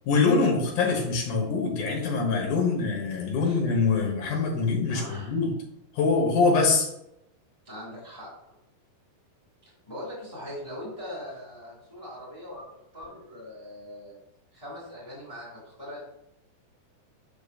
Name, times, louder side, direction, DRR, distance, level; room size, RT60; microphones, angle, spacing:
voice 1, 0.1-5.5 5.9-6.9, left 4 dB, 65° left, 0 dB, 2.1 m, -24 dB
voice 2, 4.9-5.4 7.6-8.3 9.9-12.6 12.9-14.2 14.5-16.0, left 1 dB, 25° left, -7 dB, 0.7 m, -41 dB
6.8 x 6.2 x 2.4 m, 0.81 s
omnidirectional pair, 5.0 m